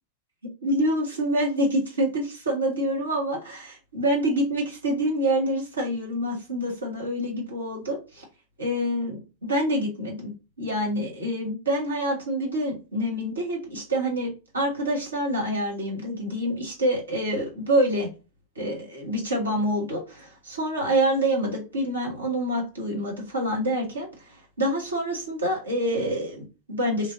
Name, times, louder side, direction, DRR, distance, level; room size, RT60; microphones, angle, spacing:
voice 1, 0.6-8.2 8.6-10.3 10.6-18.1 18.5-27.1, equal, 75° right, -2 dB, 1.3 m, -26 dB
3.2 x 3.1 x 2.6 m, 0.30 s
figure-of-eight pair, 90°, 0 cm